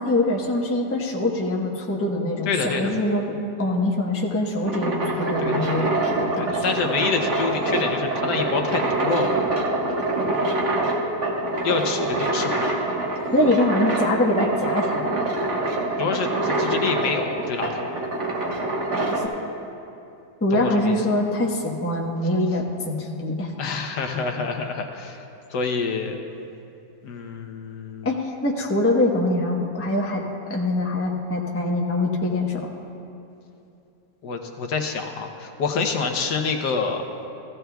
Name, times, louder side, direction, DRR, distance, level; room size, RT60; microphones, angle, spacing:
voice 1, 0.0-6.6 13.3-15.1 19.1-19.2 20.4-23.5 28.0-30.2 30.5-32.7, left 1 dB, 10° left, -2 dB, 0.7 m, -24 dB
voice 2, 2.5-2.9 5.4-5.6 6.3-9.4 11.6-12.7 16.0-17.8 20.5-21.0 23.6-25.2 25.5-26.2 27.0-28.1 34.2-37.0, left 4 dB, 70° left, 4 dB, 1.3 m, -27 dB
sound 1, 4.4-19.3, right 2 dB, 45° right, 1.5 m, -25 dB
15.5 x 15.0 x 2.3 m, 2.7 s
omnidirectional pair, 1.9 m